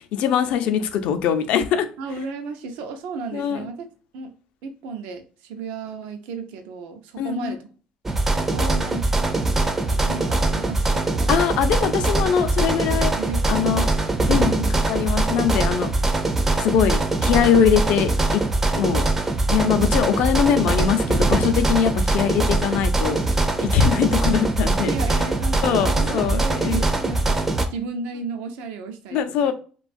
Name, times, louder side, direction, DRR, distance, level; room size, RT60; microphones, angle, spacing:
voice 1, 0.0-1.9 3.3-3.7 7.2-7.6 11.3-13.1 13.5-13.9 14.3-15.9 16.6-18.4 18.8-19.1 19.5-24.9 25.6-26.8 29.1-29.5, left 8 dB, 65° left, 0.4 m, -22 dB
voice 2, 2.0-3.9 4.1-4.3 4.6-7.7 8.4-11.3 13.2-14.8 22.0-22.1 24.6-27.4 27.7-29.5, right 4 dB, 85° right, 0.5 m, -34 dB
sound 1, 8.1-27.7, right 2 dB, 15° right, 0.4 m, -22 dB
3.1 x 2.3 x 2.4 m
cardioid pair, 135°, 2 cm